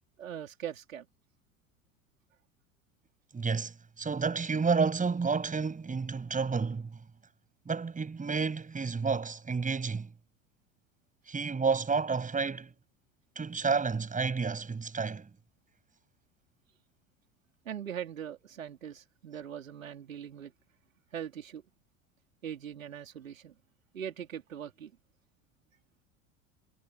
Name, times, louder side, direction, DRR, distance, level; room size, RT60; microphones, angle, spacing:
voice 1, 0.2-1.1 17.6-20.5 21.1-21.6 22.4-23.5 23.9-24.9, right 9 dB, 75° right, 3.9 m, -41 dB
voice 2, 3.3-7.0 7.7-10.1 11.3-12.7 13.4-15.3, right 5 dB, 20° right, 7.1 m, -30 dB
figure-of-eight pair, 70°, 40 cm